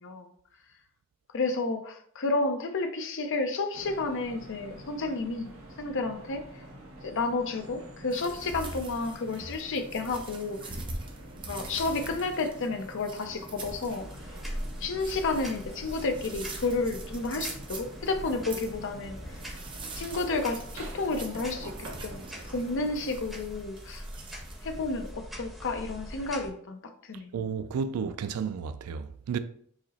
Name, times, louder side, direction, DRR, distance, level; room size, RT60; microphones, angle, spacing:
voice 1, 1.3-5.5 5.8-6.4 7.0-10.8 11.4-14.1 14.8-19.2 19.9-21.7 22.0-22.2 22.5-24.0 24.6-27.3, left 3 dB, 60° left, 0.6 m, -31 dB
sound 1, 3.7-23.2, right 1 dB, 65° right, 1.1 m, -47 dB
sound 2, 8.1-25.1, right 2 dB, 25° right, 0.5 m, -44 dB
sound 3, 13.9-26.5, equal, ahead, 0.9 m, -43 dB
voice 2, 27.3-29.4, right 6 dB, 85° right, 0.3 m, -32 dB
4.8 x 2.0 x 4.1 m
head